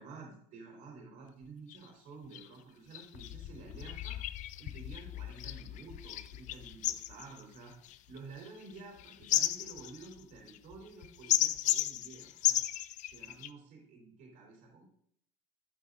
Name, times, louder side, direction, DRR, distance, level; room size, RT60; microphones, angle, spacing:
voice 1, 0.0-4.2 4.6-7.7 8.1-12.6 13.1-14.9, right 4 dB, 60° right, -1 dB, 3.4 m, -51 dB
sound 1, 1.4-1.5 1.7-1.9 2.3-2.5 2.9-13.5, left 14 dB, 55° left, 0.4 m, -35 dB
9.1 x 7.7 x 2.5 m, 0.66 s
supercardioid pair, 110°, 15 cm